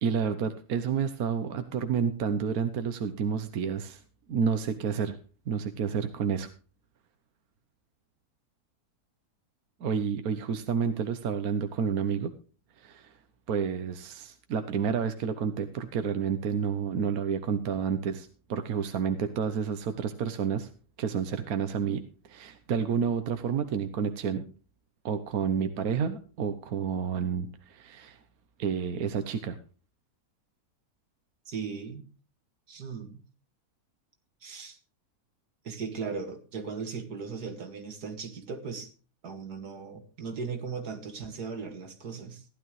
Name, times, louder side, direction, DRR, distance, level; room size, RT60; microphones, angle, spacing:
voice 1, 0.0-4.0 4.3-5.2 5.5-6.5 9.8-12.3 12.8-13.1 13.5-20.7 21.0-24.4 25.0-28.2 28.6-29.6, right 7 dB, 70° right, 9 dB, 1.4 m, -30 dB
voice 2, 31.5-32.0 32.7-33.2 34.4-34.8 35.6-38.9 39.2-42.4, right 5 dB, 85° right, 5 dB, 2.5 m, -37 dB
15.5 x 11.5 x 3.2 m, 0.36 s
omnidirectional pair, 1.6 m